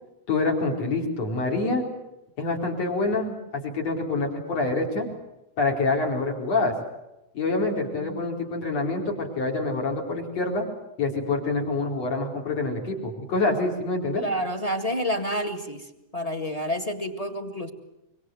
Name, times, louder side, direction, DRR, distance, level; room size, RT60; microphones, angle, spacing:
voice 1, 0.3-1.9 2.4-5.1 5.6-6.7 7.3-10.7 11.0-14.2, left 3 dB, 55° left, 1 dB, 5.7 m, -26 dB
voice 2, 14.1-15.9 16.1-17.7, equal, 15° left, 7 dB, 1.4 m, -29 dB
25.5 x 25.0 x 8.0 m, 0.94 s
omnidirectional pair, 3.6 m